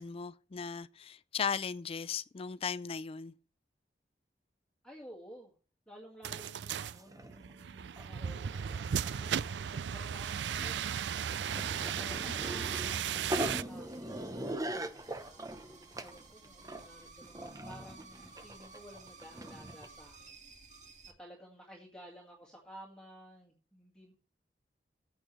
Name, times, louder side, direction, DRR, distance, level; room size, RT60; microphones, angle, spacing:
voice 1, 0.0-3.3, left 6 dB, 35° left, 0.4 m, -37 dB
voice 2, 4.8-5.5 5.9-10.7 11.8-15.6 16.0-20.3 21.2-24.1, equal, 5° left, 2.0 m, -54 dB
sound 1, 6.2-13.6, right 8 dB, 75° right, 0.4 m, -36 dB
sound 2, 6.5-6.6 6.8-7.5 8.0-8.3 8.5-9.7 10.2-19.9, right 1 dB, 20° right, 0.8 m, -41 dB
sound 3, 9.0-21.1, right 3 dB, 45° right, 1.9 m, -57 dB
15.0 x 8.4 x 3.2 m
head